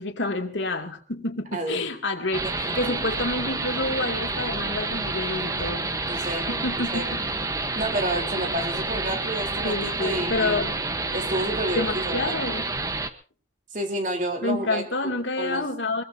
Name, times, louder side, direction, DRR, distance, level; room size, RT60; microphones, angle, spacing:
voice 1, 0.0-7.2 9.6-10.7 11.8-12.6 14.4-16.0, left 2 dB, 85° left, 4 dB, 2.6 m, -29 dB
sound 1, 2.3-13.1, right 3 dB, 20° right, 1.1 m, -29 dB
voice 2, 2.6-3.1 6.1-7.2 7.8-10.7 11.1-12.4 13.7-15.7, right 1 dB, 45° right, 4 dB, 3.8 m, -30 dB
23.0 x 22.0 x 2.8 m, 0.38 s
head